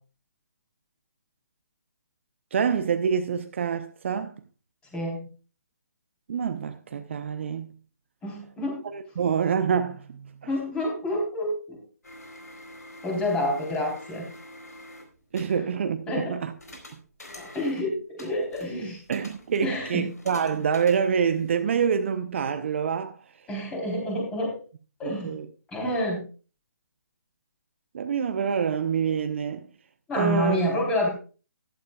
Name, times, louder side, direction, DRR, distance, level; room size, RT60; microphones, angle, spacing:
voice 1, 2.5-4.3 6.3-7.7 8.8-10.5 15.3-16.5 19.1-23.2 25.0-25.5 27.9-29.7 30.2-30.6, right 7 dB, 45° right, 0.8 m, -26 dB
voice 2, 4.9-5.3 8.2-8.9 10.4-11.8 13.0-14.3 16.1-16.4 17.3-19.0 19.6-20.1 23.5-24.5 25.0-25.4 25.7-26.2 30.1-31.1, left 1 dB, 10° left, 3.7 m, -28 dB
sound 1, 12.0-15.6 16.6-17.9 18.2-21.7, left 1 dB, 75° left, 4.1 m, -47 dB
14.0 x 11.5 x 2.3 m
figure-of-eight pair, 140°, 9 cm